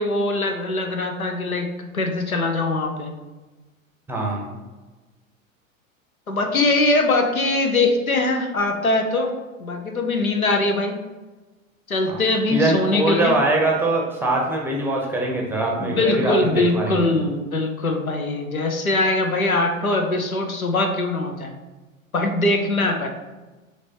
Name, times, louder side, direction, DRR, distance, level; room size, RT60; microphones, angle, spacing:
voice 1, 0.0-3.1 6.3-9.3 9.6-11.0 11.9-13.4 15.8-21.5 22.1-23.1, left 2 dB, 90° left, 4 dB, 0.6 m, -22 dB
voice 2, 4.1-4.6 12.0-12.2 12.5-17.1, right 2 dB, 5° right, -2 dB, 0.6 m, -22 dB
5.1 x 3.2 x 2.7 m, 1.2 s
figure-of-eight pair, 85°, 41 cm